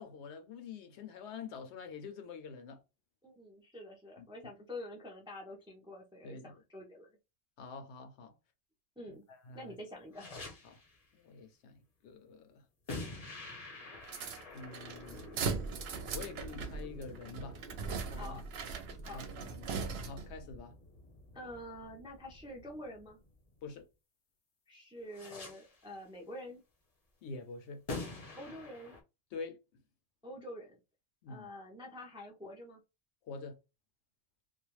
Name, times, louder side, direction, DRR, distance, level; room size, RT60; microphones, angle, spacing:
voice 1, 0.0-2.8 4.2-4.3 6.2-6.6 7.6-8.3 9.3-9.8 10.6-10.8 11.1-12.6 14.5-15.3 16.1-17.6 18.1-18.4 19.1-20.7 23.6-23.9 27.2-27.8 29.3-29.6 31.2-31.5 33.3-33.6, left 4 dB, 75° left, 0.9 m, -46 dB
voice 2, 3.2-7.1 9.0-9.2 9.5-10.3 18.2-18.4 19.0-19.2 21.3-23.2 24.7-26.6 28.3-29.0 30.2-30.8 31.3-32.8, left 1 dB, 10° right, 0.3 m, -47 dB
sound 1, 10.1-11.0 12.9-23.8 25.1-25.9 27.9-29.0, left 2 dB, 40° left, 0.7 m, -48 dB
sound 2, 14.0-20.4, right 5 dB, 65° right, 0.8 m, -39 dB
2.4 x 2.2 x 3.0 m
omnidirectional pair, 1.2 m